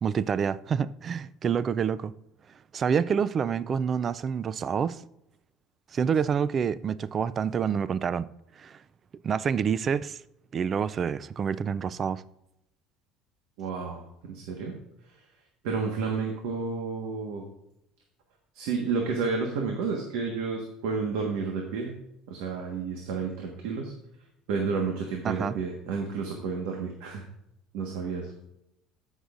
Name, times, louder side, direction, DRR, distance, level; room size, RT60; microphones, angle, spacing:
voice 1, 0.0-2.1 2.7-5.0 5.9-8.3 8.6-8.8 9.2-10.2 10.5-12.2 25.2-25.5, right 7 dB, 35° right, 0.3 m, -27 dB
voice 2, 13.6-14.7 15.0-15.2 15.6-17.4 18.5-21.9 22.3-23.9 24.5-27.2 27.7-28.3, right 5 dB, 85° right, 1.4 m, -31 dB
15.0 x 6.3 x 2.5 m
cardioid pair, 125°, 0 cm